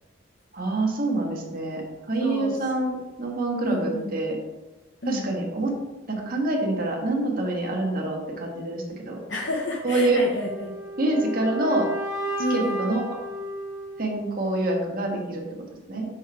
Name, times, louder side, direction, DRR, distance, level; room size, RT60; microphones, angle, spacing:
voice 1, 0.5-4.4 5.0-5.7 6.1-9.2 9.8-10.2 11.0-11.9 12.5-13.2 14.0-15.4 15.9-16.1, right 2 dB, 50° right, 0 dB, 1.5 m, -26 dB
voice 2, 2.2-2.6 3.7-4.1 5.0-5.3 9.3-10.7 12.4-12.8, left 1 dB, 70° left, -2 dB, 0.9 m, -29 dB
sound 1, 10.4-14.4, equal, 15° right, 1.9 m, -33 dB
6.1 x 4.6 x 4.8 m, 1.1 s
head